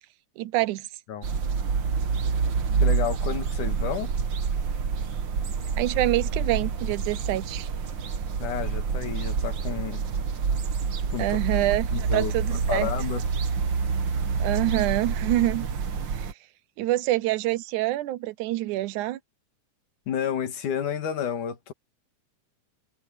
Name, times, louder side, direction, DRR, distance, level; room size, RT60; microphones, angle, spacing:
voice 1, 0.4-0.9 5.8-7.7 11.2-12.9 14.4-15.7 16.1-16.3 16.8-19.2, right 16 dB, 80° right, 2.2 m, -26 dB
sound 1, 1.2-16.3, right 5 dB, 50° right, 1.6 m, -27 dB
voice 2, 2.8-4.1 8.4-10.0 11.1-11.6 11.9-12.3 12.7-13.2 20.1-21.7, left 8 dB, 85° left, 3.5 m, -31 dB
omnidirectional pair, 3.5 m